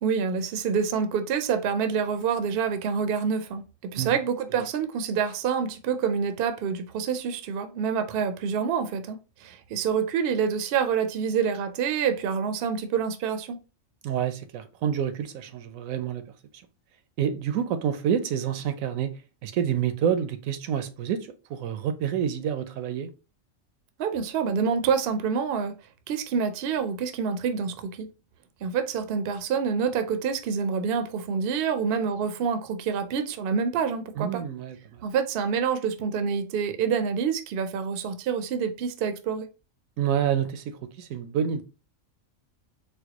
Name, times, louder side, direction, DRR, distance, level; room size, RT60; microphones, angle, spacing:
voice 1, 0.0-13.6 24.0-25.7 26.1-28.1 28.6-34.4 35.0-39.5, right 6 dB, 65° right, 0.6 m, -27 dB
voice 2, 14.0-16.2 17.2-19.1 19.4-23.1 34.2-35.0 40.0-41.6, right 8 dB, 90° right, 1.0 m, -28 dB
4.3 x 2.1 x 2.8 m
omnidirectional pair, 1.4 m